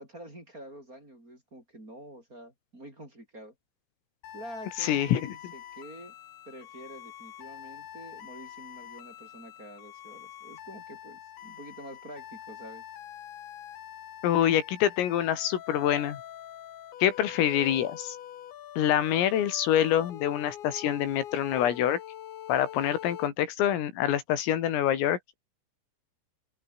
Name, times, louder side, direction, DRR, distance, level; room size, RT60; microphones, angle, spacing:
voice 1, 0.0-3.5 4.3-6.1 6.5-12.8, right 1 dB, 15° right, 6.0 m, -47 dB
sound 1, 4.2-23.3, left 11 dB, 65° left, 4.2 m, -44 dB
voice 2, 4.8-5.3 14.2-16.2 17.0-18.2 18.8-22.0 22.5-25.4, left 11 dB, 85° left, 5.2 m, -26 dB
open air
omnidirectional pair, 5.8 m